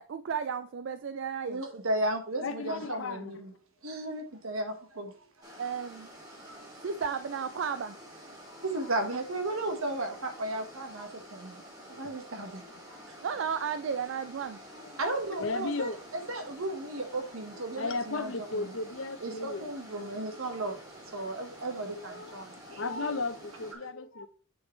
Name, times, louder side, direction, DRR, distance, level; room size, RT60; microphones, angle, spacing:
voice 1, 0.0-1.6 5.6-6.1 6.8-8.0 13.2-14.6, right 6 dB, 60° right, 0.4 m, -33 dB
voice 2, 1.4-3.5 3.8-5.1 6.4-6.6 8.6-11.6 12.0-12.6 12.9-13.1 15.0-15.9 16.3-18.7 19.2-20.7 21.1-22.8, right 2 dB, 85° right, 1.5 m, -34 dB
voice 3, 2.4-3.4 8.5-8.6 11.9-12.1 14.7-15.0 15.4-16.0 16.4-16.6 17.5-19.7 22.1-24.3, left 3 dB, 65° left, 0.8 m, -35 dB
sound 1, 5.4-23.7, equal, 20° right, 2.3 m, -49 dB
7.9 x 6.4 x 3.2 m
head